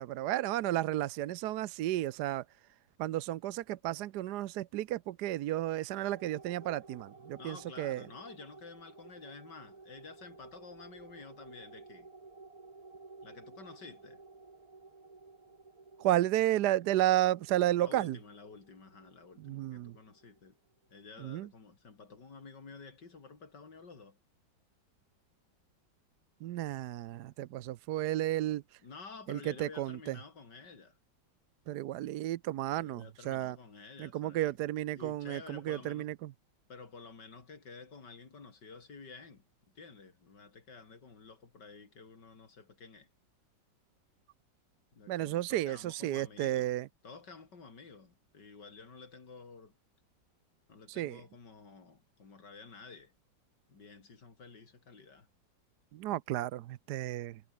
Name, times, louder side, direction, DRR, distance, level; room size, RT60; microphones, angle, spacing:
voice 1, 0.0-2.4 3.0-8.0 16.0-18.2 19.4-20.0 21.2-21.5 26.4-28.8 29.3-30.2 31.7-33.6 34.0-36.3 45.1-46.9 50.9-51.2 55.9-57.4, right 14 dB, 70° right, 1.1 m, -32 dB
sound 1, 6.1-20.9, right 3 dB, 20° right, 1.1 m, -55 dB
voice 2, 7.4-12.1 13.2-14.2 17.8-20.6 20.9-24.2 28.8-31.0 32.7-34.6 34.9-36.1 36.7-43.1 44.9-46.7 47.0-49.8 50.7-53.1 53.7-55.3, left 4 dB, 60° left, 3.9 m, -51 dB
omnidirectional pair, 2.1 m